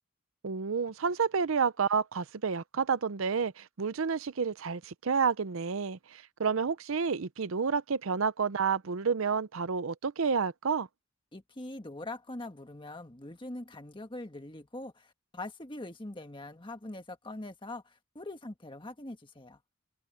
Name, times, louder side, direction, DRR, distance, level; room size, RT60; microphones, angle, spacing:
voice 1, 0.4-10.9, right 5 dB, 75° right, 0.6 m, -30 dB
voice 2, 11.3-19.6, left 2 dB, 25° left, 1.6 m, -43 dB
open air
head